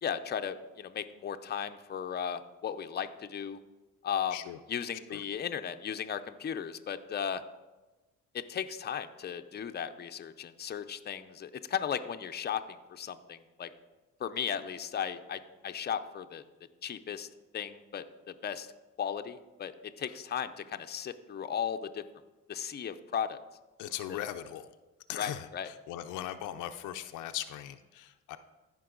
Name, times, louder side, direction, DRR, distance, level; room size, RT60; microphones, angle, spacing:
voice 1, 0.0-3.6 4.0-4.4 4.7-7.4 8.3-13.7 14.2-16.4 16.8-17.3 17.5-18.0 18.4-18.7 19.0-19.7 20.0-22.0 22.5-23.4 24.1-24.2 25.2-25.7, left 8 dB, 35° left, 8 dB, 0.6 m, -36 dB
voice 2, 23.8-24.7 25.1-28.4, left 12 dB, 90° left, 9 dB, 0.5 m, -39 dB
14.5 x 5.3 x 3.8 m, 1.1 s
cardioid pair, 90°, 30 cm